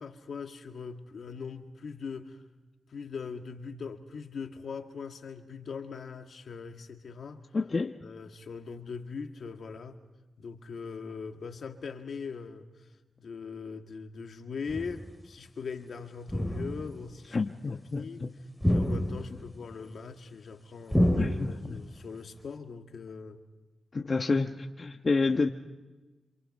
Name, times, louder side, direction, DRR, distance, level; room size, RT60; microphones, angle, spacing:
voice 1, 0.0-2.4 2.9-7.5 8.0-10.0 10.4-12.9 13.2-18.2 18.7-23.4, left 5 dB, 75° left, 5 dB, 2.1 m, -41 dB
voice 2, 7.5-8.0 17.3-18.3 21.2-21.8 23.9-25.5, left 3 dB, 50° left, 4 dB, 1.2 m, -29 dB
sound 1, 14.7-15.1 16.3-17.0 18.6-19.5 20.9-21.9, equal, ahead, 3.4 m, -28 dB
28.0 x 27.0 x 5.4 m, 1.2 s
cardioid pair, 45°, 0 cm